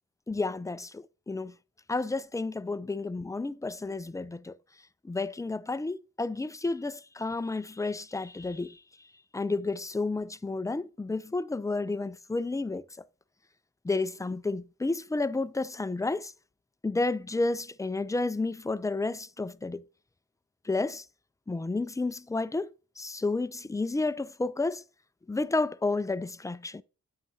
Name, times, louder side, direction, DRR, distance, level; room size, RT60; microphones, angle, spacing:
voice 1, 0.3-1.5 1.9-4.6 5.0-8.8 9.3-12.8 13.8-16.3 16.8-19.8 20.7-21.0 21.5-22.7 23.0-24.8 25.3-26.8, left 3 dB, 10° left, 0.4 m, -31 dB
8.7 x 7.7 x 2.8 m
cardioid pair, 50°, 34 cm